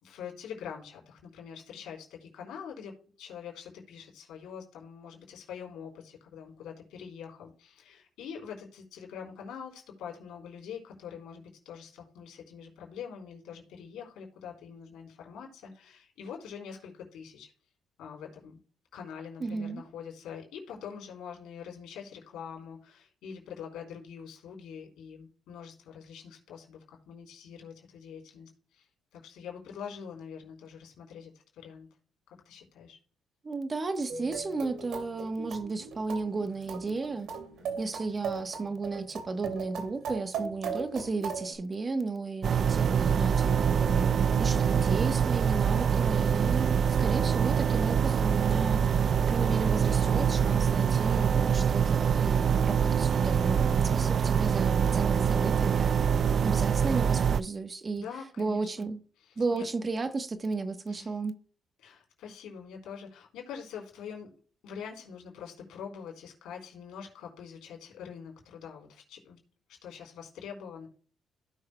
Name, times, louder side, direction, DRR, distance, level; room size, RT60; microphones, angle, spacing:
voice 1, 0.0-17.5 18.0-18.6 18.9-31.9 32.3-33.0 58.0-58.9 59.2-59.6 60.9-61.2 61.8-64.3 64.6-69.4 69.7-70.9, left 7 dB, 85° left, 3.7 m, -44 dB
voice 2, 19.4-19.8 33.4-37.3 37.8-56.0 56.4-58.0 58.4-59.0 59.4-61.4, right 3 dB, 30° right, 1.0 m, -34 dB
sound 1, 34.1-41.5, right 5 dB, 85° right, 2.4 m, -38 dB
sound 2, 42.4-57.4, right 7 dB, 55° right, 0.3 m, -25 dB
16.0 x 6.5 x 2.2 m
cardioid pair, 90°, 0 cm